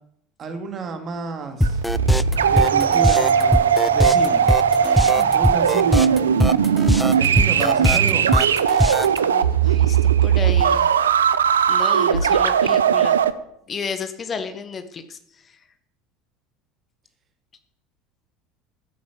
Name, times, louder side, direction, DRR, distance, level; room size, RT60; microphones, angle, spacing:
voice 1, 0.4-1.8 2.5-4.5 5.0-6.3 7.0-8.3, right 4 dB, 40° right, 7 dB, 2.7 m, -31 dB
sound 1, 1.6-9.2, left 1 dB, 5° left, 0.5 m, -21 dB
sound 2, 1.6-13.3, right 8 dB, 85° right, 0.7 m, -18 dB
voice 2, 9.2-10.9 11.7-13.2 13.7-15.5, left 5 dB, 35° left, 9 dB, 1.7 m, -32 dB
14.0 x 8.6 x 7.7 m, 0.71 s
hypercardioid pair, 70°, 0 cm